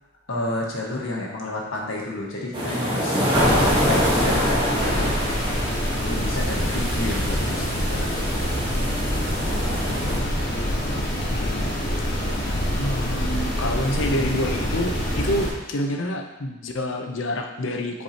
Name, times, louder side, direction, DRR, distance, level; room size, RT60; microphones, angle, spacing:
voice 1, 0.3-3.2 3.8-5.2 6.0-8.5, left 1 dB, 90° left, -2 dB, 1.4 m, -30 dB
sound 1, 2.5-10.2, equal, 25° right, 1.3 m, -25 dB
sound 2, 3.3-15.5, equal, 50° left, 1.4 m, -26 dB
voice 2, 10.9-11.7 12.8-18.0, left 1 dB, 70° left, 3 dB, 0.7 m, -28 dB
7.8 x 4.8 x 2.9 m, 1.0 s
head